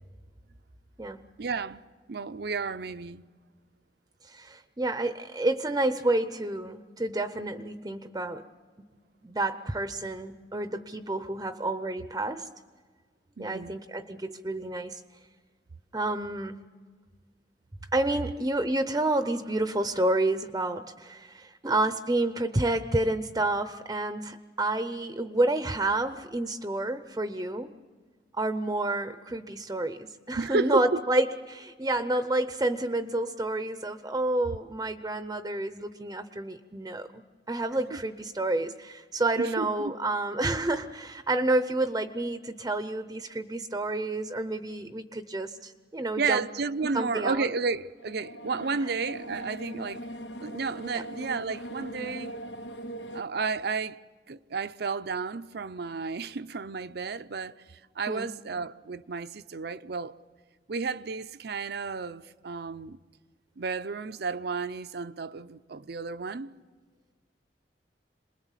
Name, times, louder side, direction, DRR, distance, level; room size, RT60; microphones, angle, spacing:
voice 1, 1.4-1.8 2.1-3.2 13.4-13.7 30.4-31.0 37.9-38.0 39.4-39.9 46.2-50.0 50.4-52.3 53.1-54.0 54.3-60.2 60.7-63.0 63.6-66.5, right 4 dB, 60° right, 0.6 m, -32 dB
voice 2, 4.2-8.4 9.2-12.5 13.4-15.0 15.9-16.6 17.9-27.8 28.3-37.2 37.5-46.4 46.9-47.5 50.9-51.0 58.1-58.3, right 2 dB, 20° right, 0.7 m, -29 dB
sound 1, 48.0-53.2, right 1 dB, 85° left, 1.1 m, -40 dB
27.5 x 21.0 x 7.4 m
head